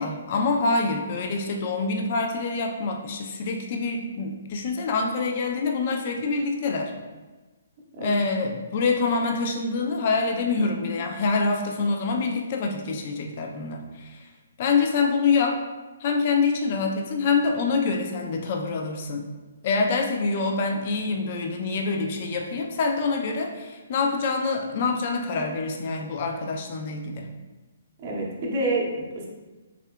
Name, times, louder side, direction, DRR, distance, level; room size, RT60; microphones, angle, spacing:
voice 1, 0.0-6.9 8.0-14.3 14.6-15.6 16.0-19.3 19.6-27.3, left 4 dB, 40° left, 2 dB, 0.3 m, -26 dB
voice 2, 28.0-29.3, right 2 dB, 35° right, -3 dB, 0.6 m, -28 dB
3.6 x 2.7 x 2.2 m, 1.2 s
figure-of-eight pair, 130°, 0 cm